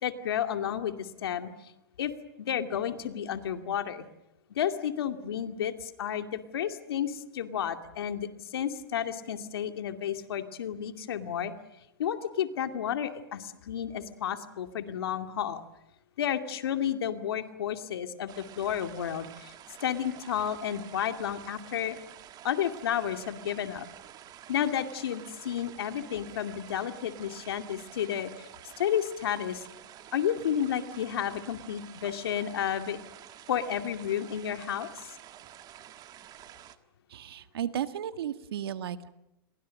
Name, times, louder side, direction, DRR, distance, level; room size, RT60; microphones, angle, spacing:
voice 1, 0.0-1.5 2.0-2.1 2.4-4.1 4.5-11.5 12.0-15.6 16.2-19.5 19.8-22.0 22.4-23.9 24.5-28.5 28.8-29.6 30.1-33.0 33.5-35.1, left 9 dB, 75° left, 6 dB, 2.4 m, -31 dB
sound 1, 18.3-36.8, right 11 dB, 30° right, 1.6 m, -50 dB
voice 2, 37.1-39.1, right 10 dB, 75° right, 10 dB, 1.7 m, -34 dB
29.5 x 22.5 x 6.6 m, 0.91 s
hypercardioid pair, 120°, 13 cm